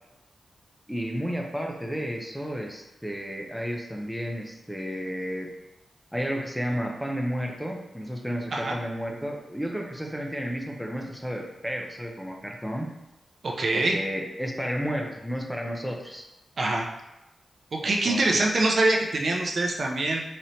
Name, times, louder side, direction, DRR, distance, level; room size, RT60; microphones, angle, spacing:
voice 1, 0.9-5.5 6.1-12.9 13.7-16.2 17.8-18.4, equal, ahead, 1 dB, 0.6 m, -32 dB
voice 2, 13.4-14.0 16.6-16.9 17.7-20.2, right 2 dB, 55° right, 0 dB, 0.6 m, -24 dB
4.2 x 3.1 x 2.7 m, 0.95 s
cardioid pair, 75°, 0 cm